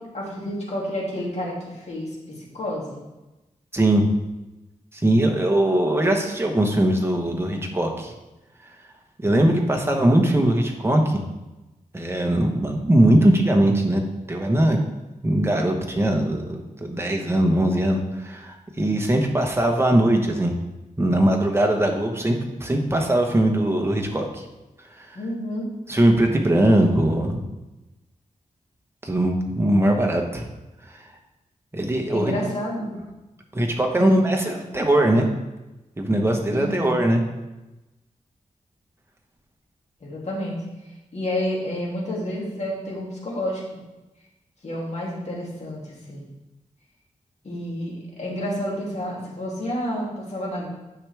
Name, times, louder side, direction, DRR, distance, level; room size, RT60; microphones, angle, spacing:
voice 1, 0.0-3.0 25.1-25.7 32.1-32.9 34.0-34.6 36.5-37.0 40.0-40.6 41.1-43.6 44.6-46.3 47.4-50.7, left 1 dB, 55° left, -4 dB, 2.6 m, -30 dB
voice 2, 3.7-4.1 5.0-8.1 9.2-11.2 11.9-14.0 14.3-14.8 15.2-20.5 21.0-24.5 25.9-27.4 29.0-30.4 31.7-32.3 33.5-35.3 36.0-37.2, right 1 dB, 20° right, 1 dB, 1.2 m, -20 dB
9.7 x 6.1 x 3.5 m, 1.0 s
wide cardioid pair, 100°, 14 cm